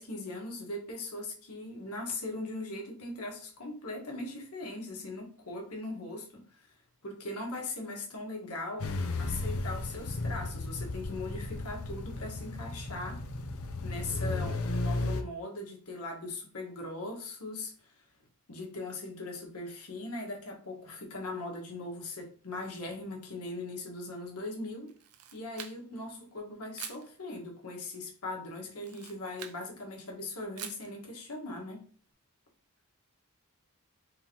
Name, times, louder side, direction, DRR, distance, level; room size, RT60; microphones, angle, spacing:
voice 1, 0.0-6.7 7.0-13.2 13.8-18.0 18.5-24.9 25.3-31.9, left 2 dB, 85° left, 1.3 m, -40 dB
sound 1, 8.8-15.2, left 2 dB, 65° left, 0.5 m, -34 dB
Camera, 24.9-26.1 26.7-27.1 28.8-29.6 30.6-30.9, right 9 dB, 90° right, 0.6 m, -45 dB
3.7 x 2.8 x 4.3 m
head